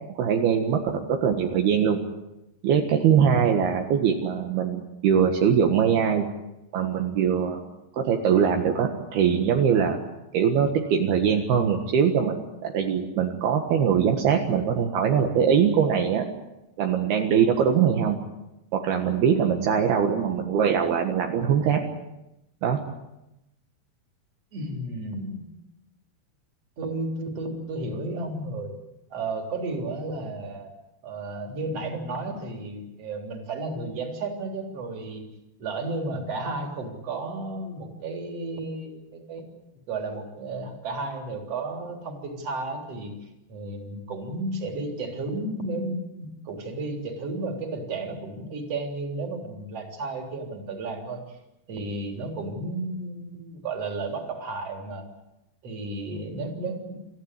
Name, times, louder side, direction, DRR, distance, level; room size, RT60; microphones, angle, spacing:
voice 1, 0.2-2.0 2.6-6.3 6.7-7.6 7.9-10.0 10.3-16.3 16.8-18.2 18.7-21.8 22.6-22.8, right 7 dB, 70° right, 3 dB, 3.5 m, -22 dB
voice 2, 24.5-25.4 26.8-28.7 29.1-30.7 31.0-35.2 35.6-39.5 39.9-43.1 43.5-51.4 51.7-55.0 55.6-56.9, right 2 dB, 40° right, 3 dB, 4.3 m, -33 dB
27.5 x 15.0 x 9.8 m, 0.93 s
omnidirectional pair, 4.7 m